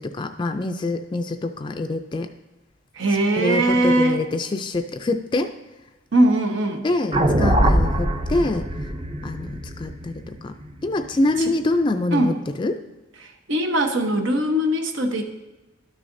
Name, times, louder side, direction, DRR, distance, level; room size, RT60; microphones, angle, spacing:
voice 1, 0.0-2.3 3.4-5.5 6.8-8.7 9.2-10.6 10.8-12.8, left 2 dB, 25° left, 7 dB, 0.3 m, -25 dB
voice 2, 2.9-4.2 6.1-6.9 12.1-12.4 13.2-15.2, right 1 dB, 85° right, 4 dB, 1.0 m, -20 dB
sound 1, 7.1-11.4, right 1 dB, 30° right, 0.6 m, -22 dB
12.0 x 6.5 x 2.6 m, 1.1 s
head